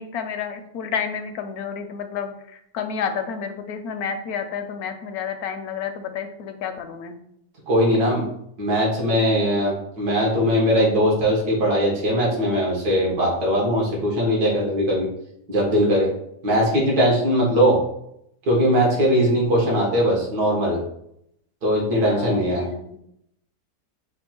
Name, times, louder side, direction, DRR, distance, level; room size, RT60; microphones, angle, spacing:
voice 1, 0.0-7.2 22.1-23.0, left 7 dB, 70° left, 7 dB, 1.0 m, -30 dB
voice 2, 7.7-8.2 8.6-15.1 15.5-16.1 16.4-17.8 18.5-20.8 21.6-22.7, equal, 70° right, -3 dB, 1.9 m, -20 dB
5.3 x 2.3 x 4.3 m, 0.74 s
omnidirectional pair, 1.8 m